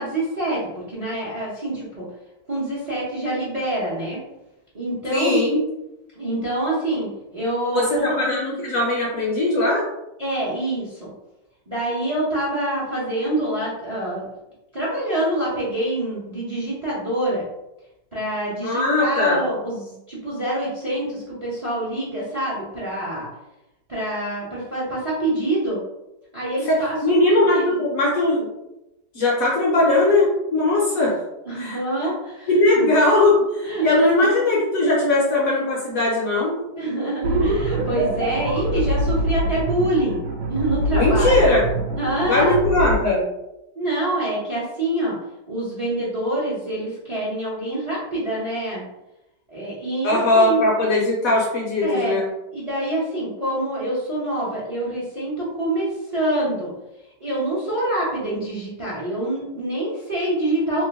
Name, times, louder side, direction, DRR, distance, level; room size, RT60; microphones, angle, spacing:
voice 1, 0.0-2.1 2.5-4.2 4.7-5.4 6.1-8.2 10.2-11.1 11.7-14.3 14.7-17.4 18.1-23.3 23.9-25.8 26.3-27.7 31.5-32.9 33.6-33.9 34.2-34.3 36.8-41.4 42.0-42.6 43.7-45.2 45.5-48.8 49.5-50.6 51.8-52.2 52.5-56.7 57.2-60.8, right 1 dB, 35° right, -8 dB, 0.6 m, -26 dB
voice 2, 5.1-5.6 7.7-9.9 18.6-19.4 26.7-28.5 29.1-31.2 31.6-31.8 32.5-36.7 40.9-41.6 42.3-43.2 50.0-52.3, left 2 dB, 65° left, -4 dB, 0.9 m, -19 dB
sound 1, 37.2-43.0, right 1 dB, 70° right, 1.1 m, -24 dB
2.9 x 2.2 x 3.4 m, 0.92 s
omnidirectional pair, 1.9 m